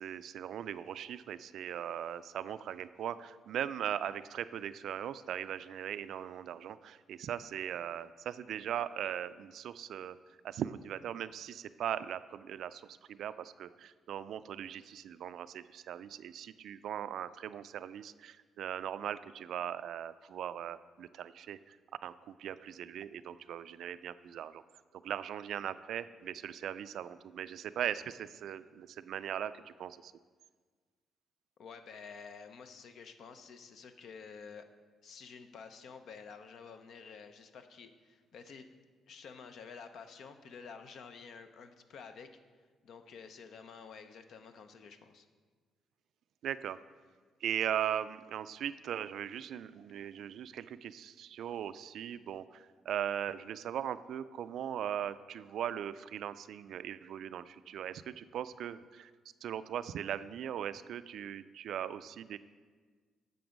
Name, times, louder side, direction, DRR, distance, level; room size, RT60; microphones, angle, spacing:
voice 1, 0.0-10.2 10.4-21.8 22.0-24.6 25.0-30.1 46.4-46.8 47.4-59.1 59.4-62.4, right 10 dB, 70° right, 14 dB, 0.3 m, -39 dB
voice 2, 31.6-34.7 35.0-38.7 39.1-42.3 42.8-45.3, left 5 dB, 70° left, 8 dB, 0.7 m, -50 dB
9.3 x 6.9 x 5.2 m, 1.5 s
cardioid pair, 90°, 0 cm